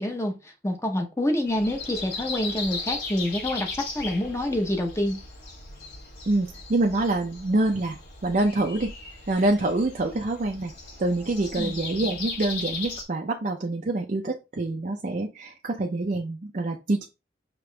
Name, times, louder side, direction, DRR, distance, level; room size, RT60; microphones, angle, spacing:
voice 1, 0.0-5.2 11.6-11.7, left 1 dB, 15° left, 3 dB, 0.8 m, -27 dB
Breathing, 1.4-13.0, left 3 dB, 75° left, 2.7 m, -37 dB
voice 2, 6.3-8.9 9.3-10.7 11.0-17.1, right 2 dB, 45° right, 1 dB, 0.5 m, -26 dB
5.2 x 3.0 x 3.2 m, 0.26 s
head